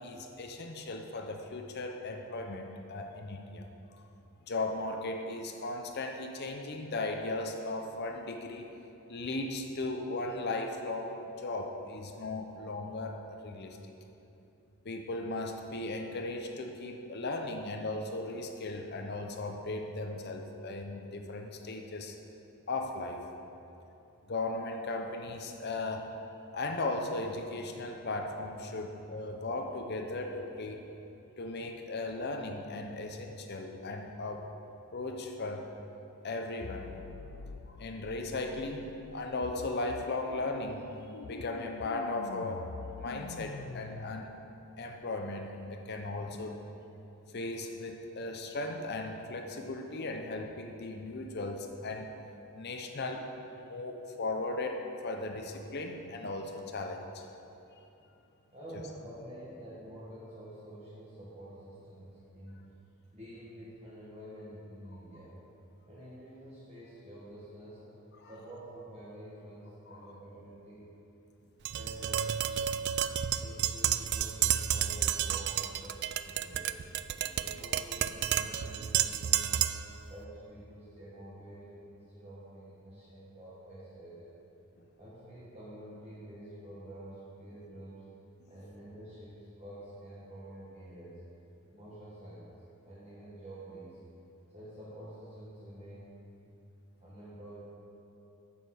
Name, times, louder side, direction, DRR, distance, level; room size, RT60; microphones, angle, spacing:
voice 1, 0.0-4.0 4.5-8.7 9.1-13.8 14.8-22.2 22.7-23.2 24.3-26.1 26.5-30.8 31.4-34.4 34.9-35.7 36.2-36.9 37.7-40.9 41.2-42.7 43.0-44.3 44.8-46.6 47.3-52.1 52.5-53.3 53.6-57.3 58.7-58.8 68.2-68.3 69.9-70.1, left 2 dB, 45° left, 4 dB, 0.7 m, -37 dB
sound 1, 36.6-44.2, left 4 dB, 80° left, 0.4 m, -45 dB
voice 2, 58.5-62.6 63.1-65.4 65.9-67.8 68.2-71.0 71.7-72.3 73.4-77.0 77.4-79.7 80.1-84.3 85.0-88.0 88.4-91.2 91.7-92.5 92.8-94.0 94.5-96.1 97.0-97.8, right 1 dB, 30° right, -9 dB, 1.6 m, -48 dB
Tap, 71.7-79.9, right 10 dB, 50° right, 0.3 m, -31 dB
9.6 x 7.4 x 6.3 m, 2.9 s
head